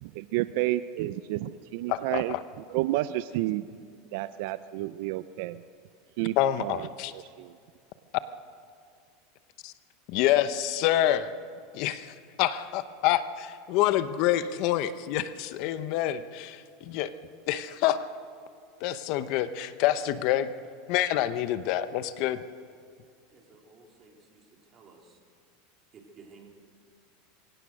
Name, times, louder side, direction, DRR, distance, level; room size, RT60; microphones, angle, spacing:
voice 1, 0.0-2.3 2.7-3.7 4.1-5.6 6.2-6.9 7.1-7.5, right 16 dB, 65° right, 14 dB, 0.5 m, -30 dB
voice 2, 1.9-2.4 6.4-7.1 9.6-9.7 10.1-11.3 11.7-17.1 17.5-18.1 18.8-20.5 20.9-22.4, left 12 dB, 55° left, 12 dB, 0.9 m, -27 dB
voice 3, 23.3-24.4 24.7-25.2 25.9-26.5, right 4 dB, 30° right, 0 dB, 4.1 m, -54 dB
23.5 x 17.0 x 6.4 m, 2.3 s
supercardioid pair, 130°, 0 cm